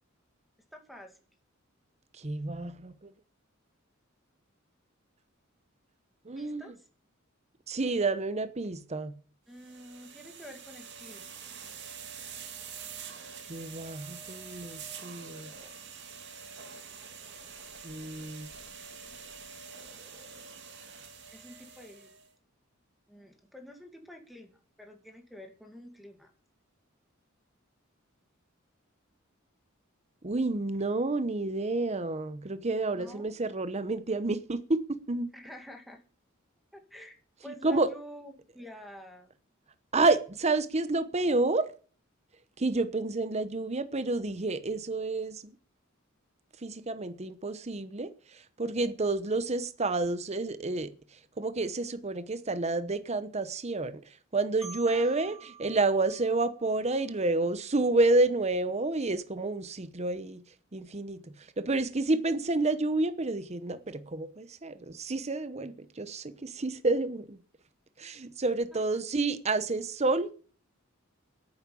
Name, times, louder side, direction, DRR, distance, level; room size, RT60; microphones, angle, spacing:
voice 1, 0.7-1.2 6.3-6.9 9.5-11.3 21.3-22.1 23.1-26.3 32.9-33.3 35.3-36.0 36.7-37.2 37.4-39.3 54.9-55.2 68.7-69.0, left 1 dB, ahead, 2.2 m, -48 dB
voice 2, 2.1-3.1 6.2-6.6 7.7-9.1 13.5-15.5 17.8-18.5 30.2-35.3 37.6-37.9 39.9-41.7 42.6-45.5 46.6-50.9 51.4-53.9 54.3-60.4 60.7-61.2 61.6-67.4 68.0-70.3, right 2 dB, 30° right, 0.9 m, -29 dB
sound 1, 9.5-22.3, right 6 dB, 60° right, 2.7 m, -46 dB
Marimba xylophone, 54.6-57.5, right 5 dB, 15° right, 3.4 m, -49 dB
10.5 x 9.5 x 8.5 m
head